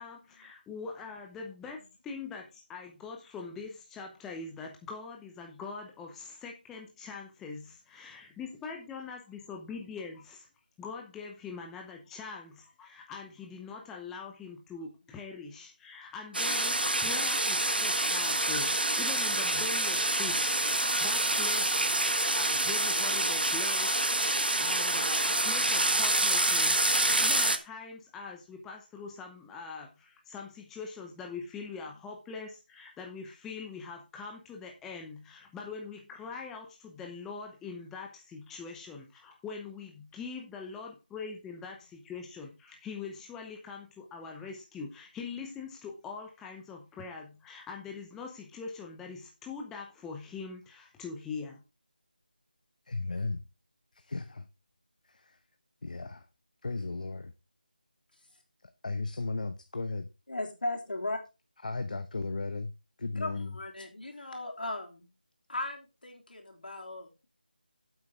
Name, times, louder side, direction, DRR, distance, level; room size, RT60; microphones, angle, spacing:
voice 1, 0.0-10.5 10.8-51.6, left 5 dB, 5° left, 0.7 m, -43 dB
sound 1, 16.3-27.6, right 2 dB, 85° right, 1.4 m, -27 dB
voice 2, 52.9-53.4 53.9-54.5 55.1-55.4 55.8-56.3 56.6-57.3 58.8-60.1 61.6-62.7 63.0-63.6, left 3 dB, 55° left, 0.9 m, -35 dB
voice 3, 60.3-61.2 63.1-65.1 65.5-67.3, left 2 dB, 70° left, 3.3 m, -37 dB
9.7 x 8.0 x 3.6 m
figure-of-eight pair, 165°, 5 cm